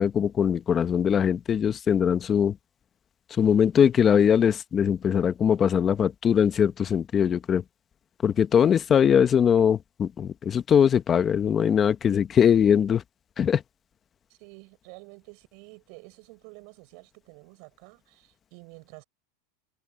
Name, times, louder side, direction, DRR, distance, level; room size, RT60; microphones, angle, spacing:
voice 1, 0.0-2.5 3.4-7.6 8.2-13.0 13.4-13.6, left 8 dB, 25° left, 1.2 m, -21 dB
voice 2, 14.3-19.0, right 35 dB, 60° right, 7.8 m, -49 dB
supercardioid pair, 125°, 0 cm